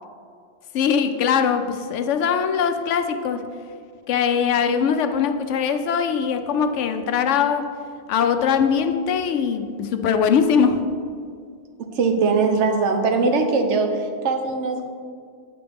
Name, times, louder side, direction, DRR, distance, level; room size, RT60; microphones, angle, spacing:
voice 1, 0.7-3.5 4.1-7.7 8.1-10.8, left 7 dB, 80° left, 8 dB, 0.9 m, -21 dB
voice 2, 11.8-14.9, right 4 dB, 75° right, 5 dB, 1.1 m, -21 dB
9.2 x 5.9 x 3.4 m, 2.2 s
omnidirectional pair, 1.2 m